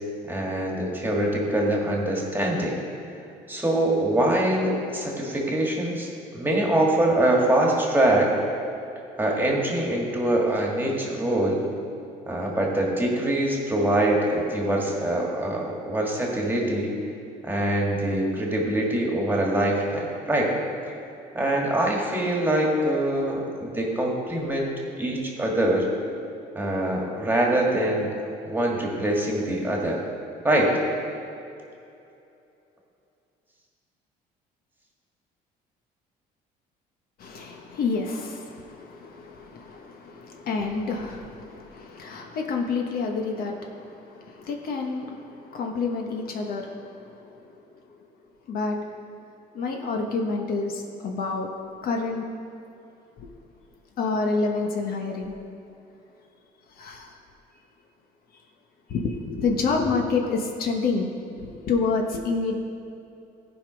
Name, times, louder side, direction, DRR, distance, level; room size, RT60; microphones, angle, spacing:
voice 1, 0.2-2.7 3.5-8.3 9.2-11.6 12.3-16.9 17.4-20.6 21.3-25.8 26.6-28.1 28.4-30.0 30.4-30.7, right 1 dB, 10° right, -1 dB, 1.9 m, -24 dB
voice 2, 37.2-47.3 48.5-48.8 49.5-51.5 51.8-52.2 53.2-53.3 54.0-55.3 56.8-57.2 58.9-61.1 61.4-62.5, left 4 dB, 60° left, 2 dB, 1.1 m, -28 dB
15.0 x 5.2 x 5.1 m, 2.7 s
cardioid pair, 110°, 17 cm